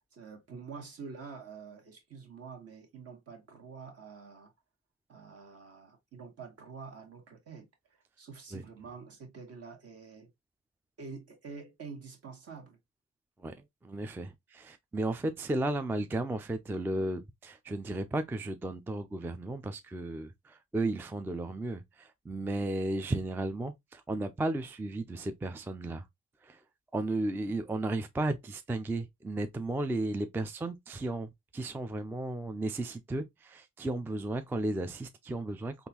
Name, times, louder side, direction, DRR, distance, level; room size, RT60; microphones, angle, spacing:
voice 1, 0.1-4.5 5.1-10.3 11.0-12.8, right 5 dB, 50° right, 1.4 m, -47 dB
voice 2, 13.4-26.0 26.4-26.6 26.9-35.9, right 2 dB, 5° right, 0.3 m, -34 dB
3.6 x 2.5 x 2.8 m
cardioid pair, 90°, 30 cm